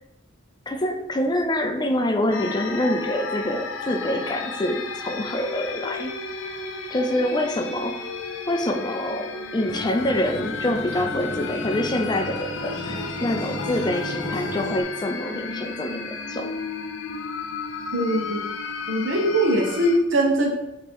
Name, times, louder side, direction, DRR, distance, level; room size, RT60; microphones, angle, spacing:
voice 1, 0.7-6.1 6.9-8.0 8.5-16.5, left 1 dB, 20° left, 5 dB, 0.5 m, -26 dB
sound 1, 2.3-20.0, left 5 dB, 80° left, 0.6 m, -34 dB
Acoustic guitar, 9.7-14.8, left 1 dB, 60° left, 1.1 m, -33 dB
voice 2, 17.9-18.4 18.9-20.5, right 1 dB, 70° right, 2 dB, 1.2 m, -21 dB
8.6 x 3.1 x 4.5 m, 0.92 s
head